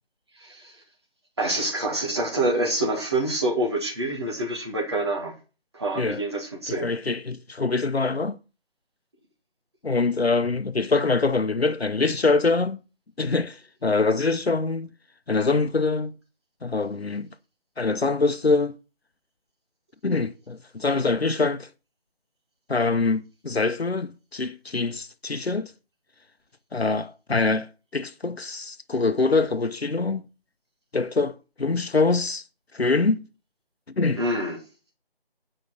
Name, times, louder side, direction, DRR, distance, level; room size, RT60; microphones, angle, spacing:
voice 1, 0.4-0.7 1.4-5.4 5.7-6.9 34.1-34.6, right 1 dB, 25° right, 2.4 m, -26 dB
voice 2, 6.8-8.4 9.8-12.8 13.2-14.9 15.3-16.1 16.6-17.3 17.8-18.7 20.0-21.7 22.7-25.7 26.7-30.2 30.9-32.4 32.7-33.2 34.0-34.2, left 3 dB, 80° left, 0.9 m, -24 dB
9.0 x 5.4 x 7.2 m
figure-of-eight pair, 170°, 31 cm